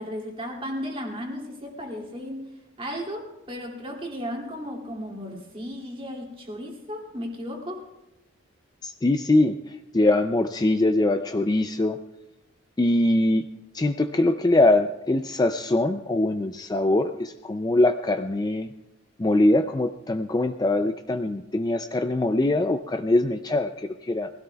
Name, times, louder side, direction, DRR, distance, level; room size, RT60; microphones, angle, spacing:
voice 1, 0.0-2.5 2.8-7.9, equal, 25° right, 0 dB, 2.5 m, -35 dB
voice 2, 8.8-12.0 12.8-13.5 13.7-18.7 19.2-24.3, left 2 dB, 20° left, 7 dB, 0.3 m, -23 dB
22.5 x 16.5 x 2.3 m, 0.96 s
head